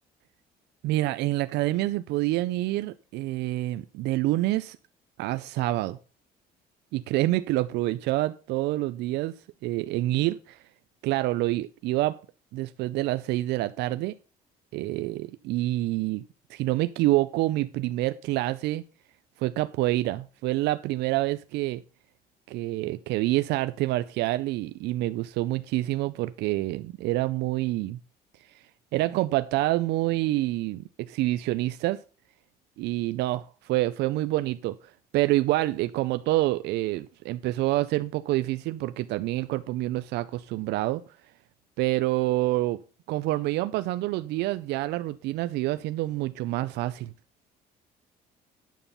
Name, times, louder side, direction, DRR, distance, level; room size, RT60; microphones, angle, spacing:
voice 1, 0.8-4.8 5.2-6.0 6.9-9.3 9.6-10.6 11.0-12.2 12.5-14.1 14.7-16.2 16.5-18.8 19.4-21.8 22.5-28.0 28.9-32.0 32.8-41.0 41.8-42.8 43.1-47.1, right 17 dB, 85° right, 13 dB, 0.5 m, -27 dB
9.4 x 7.0 x 5.5 m, 0.36 s
cardioid pair, 110°, 17 cm